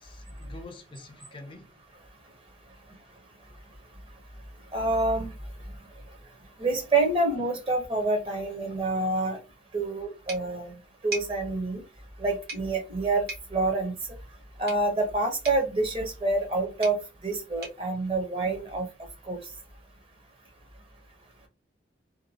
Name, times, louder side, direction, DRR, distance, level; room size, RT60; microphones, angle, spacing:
voice 1, 0.0-1.7, left 2 dB, 30° left, 0.4 m, -46 dB
voice 2, 4.7-5.3 6.6-9.4 9.7-10.7 11.0-11.8 12.2-13.3 13.5-13.9 14.6-17.0 17.2-18.9 19.3-19.4, right 2 dB, 30° right, 0.8 m, -27 dB
sound 1, 10.3-19.0, right 2 dB, 60° right, 1.3 m, -44 dB
2.8 x 2.2 x 2.7 m
head